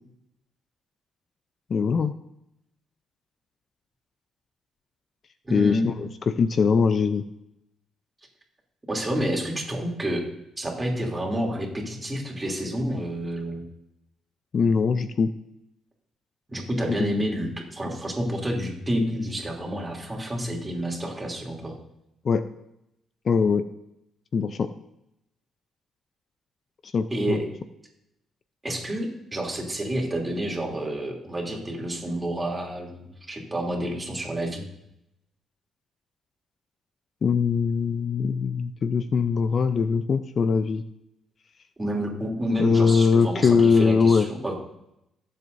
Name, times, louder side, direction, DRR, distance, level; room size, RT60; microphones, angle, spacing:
voice 1, 1.7-2.1 5.5-7.2 14.5-15.3 16.9-17.1 22.2-22.4 23.3-23.7 24.3-24.7 26.8-27.4 37.2-40.8 42.6-44.3, left 5 dB, 50° left, 11 dB, 0.5 m, -22 dB
voice 2, 5.4-5.8 8.9-10.2 10.6-13.6 16.5-21.8 27.1-27.5 28.6-34.6 41.8-44.5, equal, 20° right, -1 dB, 3.0 m, -29 dB
19.0 x 7.7 x 2.7 m, 0.83 s
cardioid pair, 90°, 0 cm